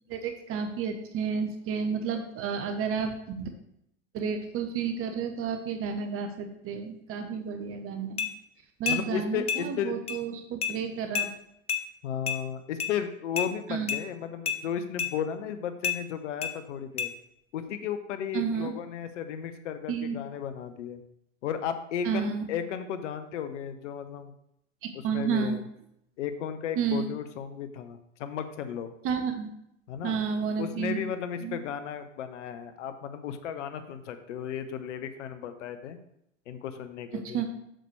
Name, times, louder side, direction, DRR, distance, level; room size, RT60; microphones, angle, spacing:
voice 1, 0.1-3.5 4.1-8.3 8.8-11.3 13.7-13.9 18.3-18.7 19.9-20.2 22.0-22.5 24.8-25.6 26.8-27.1 29.0-29.5 30.0-31.0 31.4-31.6 37.1-37.5, right 6 dB, 35° right, 7 dB, 0.9 m, -31 dB
sound 1, 8.2-8.3 8.9-9.0 9.5-9.6 10.1-10.2 10.6-10.7 11.1-11.3 11.7-11.8 12.3-12.4 12.8-12.9 13.4-13.5 13.9-14.0 14.5-14.6 15.0-15.1 15.8-16.0 16.4-16.5 17.0-17.1, left 7 dB, 15° left, 0.6 m, -29 dB
voice 2, 8.9-10.0 12.0-17.1 17.5-21.0 21.4-24.3 24.9-25.6 26.2-28.9 29.9-30.2 30.6-36.0 36.5-37.4, left 8 dB, 70° left, 9 dB, 0.8 m, -34 dB
7.7 x 6.6 x 3.2 m, 0.77 s
hypercardioid pair, 90°, 38 cm